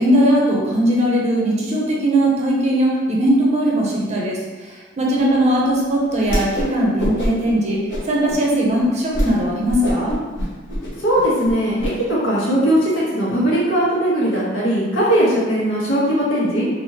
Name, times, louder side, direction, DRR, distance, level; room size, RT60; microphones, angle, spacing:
voice 1, 0.0-4.4 4.7-7.8 8.1-10.1, right 1 dB, 35° right, -3 dB, 0.6 m, -19 dB
Whoosh swoosh swish, 6.2-6.7 7.0-7.5 7.9-8.4 8.8-8.9 9.1-9.3 9.6-11.9, equal, 65° left, 0.8 m, -24 dB
voice 2, 11.0-11.7 12.1-16.7, right 1 dB, 90° left, -7 dB, 1.1 m, -19 dB
2.8 x 2.5 x 2.9 m, 1.3 s
head